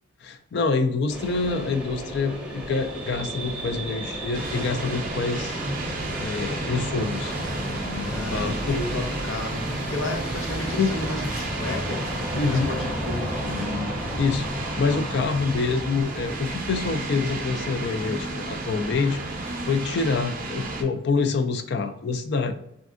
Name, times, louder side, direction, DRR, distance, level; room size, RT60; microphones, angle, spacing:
voice 1, 0.2-5.6 6.2-7.3 8.3-8.8 10.6-10.9 12.3-12.7 14.2-14.5 14.8-19.2 19.6-22.5, left 4 dB, 55° left, 8 dB, 0.3 m, -26 dB
sound 1, 1.1-20.0, equal, 5° right, 0.7 m, -35 dB
sound 2, 4.3-20.8, right 2 dB, 45° right, 0.5 m, -33 dB
sound 3, 7.3-13.6, equal, 35° left, 1.0 m, -38 dB
voice 2, 7.9-14.0, left 2 dB, 85° left, 2 dB, 0.7 m, -33 dB
3.3 x 2.5 x 2.5 m, 0.76 s
head